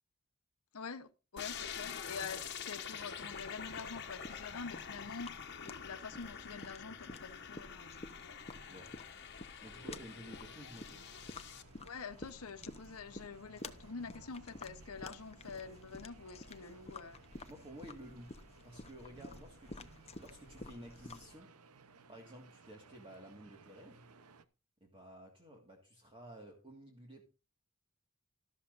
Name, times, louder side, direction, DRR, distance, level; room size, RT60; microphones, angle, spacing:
voice 1, 0.7-5.3 5.6-8.4 11.8-17.2, left 5 dB, 75° left, 0.9 m, -46 dB
sound 1, 1.4-11.6, left 7 dB, 50° left, 1.3 m, -46 dB
sound 2, 3.3-21.3, left 2 dB, 30° left, 0.8 m, -52 dB
voice 2, 8.5-9.0 9.6-11.1 17.5-18.3 18.6-21.5 22.1-24.0 24.8-27.2, right 1 dB, 25° right, 1.8 m, -53 dB
sound 3, 9.7-24.5, right 4 dB, 90° right, 0.8 m, -61 dB
13.0 x 12.5 x 2.5 m
head